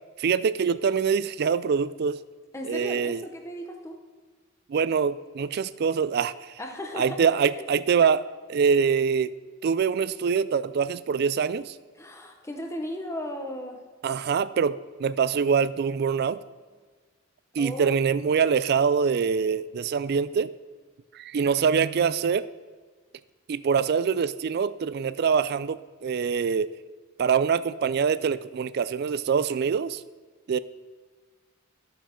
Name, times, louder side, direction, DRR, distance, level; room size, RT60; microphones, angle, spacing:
voice 1, 0.2-2.2 2.6-3.2 4.7-6.6 7.0-8.2 8.5-9.3 9.6-11.7 14.0-16.4 17.6-20.5 21.1-22.5 23.5-26.7 27.2-30.0 30.5-30.6, right 6 dB, 55° right, 16 dB, 0.3 m, -24 dB
voice 2, 2.5-4.0 6.6-7.2 7.6-7.7 12.0-13.8 17.6-17.9, left 1 dB, 15° left, 3 dB, 0.8 m, -36 dB
11.5 x 6.9 x 4.4 m, 1.4 s
head